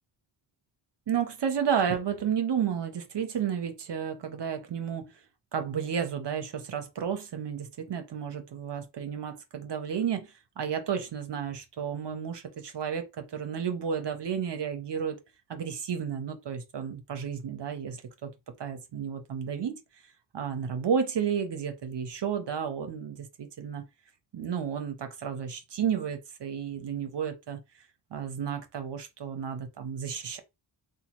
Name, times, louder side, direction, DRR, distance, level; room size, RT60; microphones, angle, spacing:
voice 1, 1.1-5.1 5.5-15.2 15.5-18.3 18.6-19.8 20.3-23.8 24.3-27.6 28.1-30.4, right 7 dB, 60° right, 0.7 m, -32 dB
3.0 x 2.2 x 2.9 m
cardioid pair, 60°, 48 cm